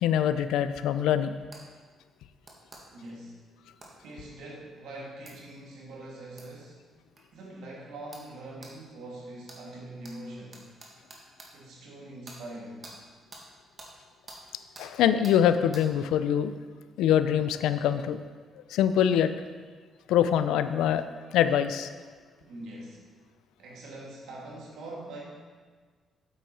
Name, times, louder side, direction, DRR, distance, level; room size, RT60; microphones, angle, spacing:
voice 1, 0.0-1.4 14.8-16.5 17.0-18.2 18.7-19.3 20.1-21.0 21.3-21.9, left 9 dB, 90° left, 11 dB, 0.4 m, -24 dB
sound 1, 1.5-1.6 2.4-2.8 3.8-3.9 5.3-5.4 6.4-6.5 7.2-7.3 8.1-8.3 8.6-8.7 9.5-9.6 10.0-10.1 10.5-11.5 12.2-12.4 12.8-13.0 13.3-13.4 13.8-13.9 14.3-14.4 14.8-14.9 15.2-15.4 15.7-15.9, right 2 dB, 35° right, 1.7 m, -47 dB
voice 2, 2.9-3.4 4.0-6.9 7.3-10.7 11.5-12.8 22.4-23.0 23.6-25.2, right 1 dB, 85° right, -3 dB, 2.4 m, -43 dB
8.2 x 7.8 x 4.3 m, 1.5 s
cardioid pair, 90°, 0 cm